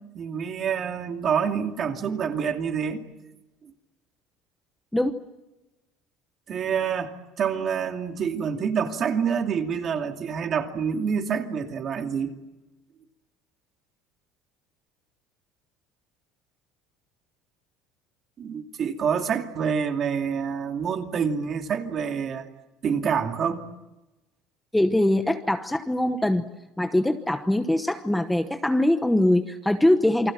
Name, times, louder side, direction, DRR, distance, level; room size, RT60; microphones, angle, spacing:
voice 1, 0.1-3.1 6.5-12.3 18.4-22.5 22.8-23.7, right 7 dB, 35° right, 5 dB, 2.5 m, -27 dB
voice 2, 24.7-26.4 26.8-30.3, left 1 dB, 5° left, 8 dB, 1.0 m, -22 dB
28.5 x 25.0 x 7.6 m, 1.0 s
cardioid pair, 160°, 0 cm